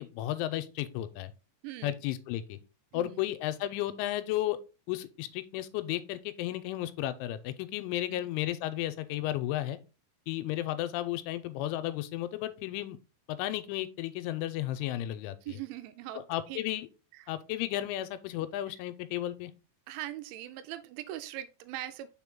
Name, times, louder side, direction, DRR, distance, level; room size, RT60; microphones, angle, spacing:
voice 1, 0.0-1.3 1.8-2.6 2.9-4.6 4.9-9.8 10.3-13.0 13.3-15.6 16.3-16.9 17.3-19.5, left 14 dB, 85° left, 3.0 m, -33 dB
voice 2, 2.9-3.2 7.9-8.3 15.4-16.6 17.1-17.3 18.7-18.8 19.9-22.1, right 13 dB, 85° right, 2.8 m, -41 dB
6.0 x 4.5 x 3.6 m
omnidirectional pair, 5.5 m